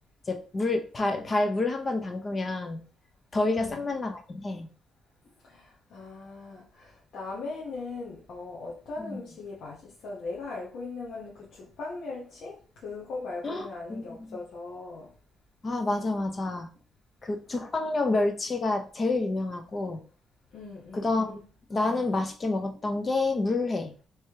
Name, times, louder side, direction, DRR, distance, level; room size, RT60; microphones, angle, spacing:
voice 1, 0.3-2.8 3.3-4.7 9.0-9.2 13.4-14.4 15.6-16.7 17.2-20.0 20.9-21.4 21.7-23.9, left 2 dB, 30° left, 0.8 m, -28 dB
voice 2, 3.4-3.9 5.5-15.1 20.5-21.5, left 3 dB, 65° left, 1.2 m, -39 dB
3.4 x 3.1 x 4.6 m
cardioid pair, 130°, 0 cm